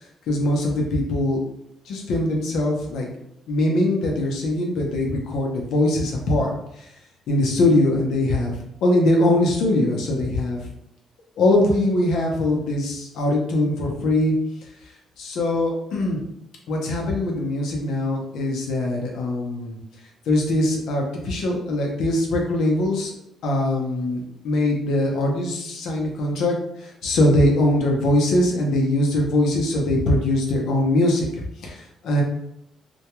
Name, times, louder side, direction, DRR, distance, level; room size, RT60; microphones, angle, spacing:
voice 1, 0.3-1.4 1.9-3.1 3.5-6.9 7.3-8.5 8.8-10.6 11.4-14.3 15.2-16.2 16.7-19.8 20.3-23.1 23.4-31.3 31.6-32.2, left 1 dB, 80° left, 0 dB, 0.6 m, -22 dB
2.2 x 2.2 x 2.9 m, 0.78 s
cardioid pair, 90°, 0 cm